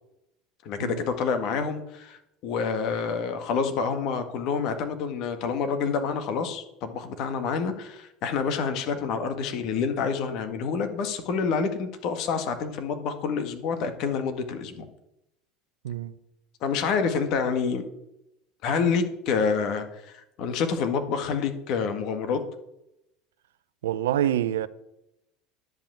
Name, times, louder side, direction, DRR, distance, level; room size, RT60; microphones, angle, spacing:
voice 1, 0.6-14.9 16.6-17.8 18.6-22.4, left 5 dB, 60° left, 1.7 m, -28 dB
voice 2, 15.8-16.2 23.8-24.7, right 11 dB, 85° right, 0.6 m, -26 dB
10.5 x 5.5 x 8.6 m
hypercardioid pair, 85°, 0 cm